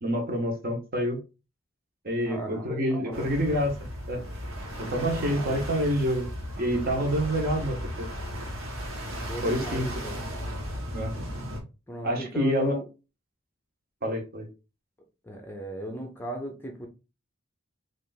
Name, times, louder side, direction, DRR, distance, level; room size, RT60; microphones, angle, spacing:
voice 1, 0.0-1.2 2.0-3.7 4.1-4.2 4.8-6.3 6.6-8.1 9.4-10.0 10.9-11.1 12.0-12.8 14.0-14.5, equal, 45° right, 1.1 m, -27 dB
voice 2, 2.3-3.3 5.3-5.7 9.0-10.2 11.9-12.8 15.2-16.9, right 1 dB, 10° left, 0.6 m, -37 dB
sound 1, 3.1-11.6, equal, 75° right, 1.3 m, -35 dB
3.3 x 2.5 x 4.0 m
head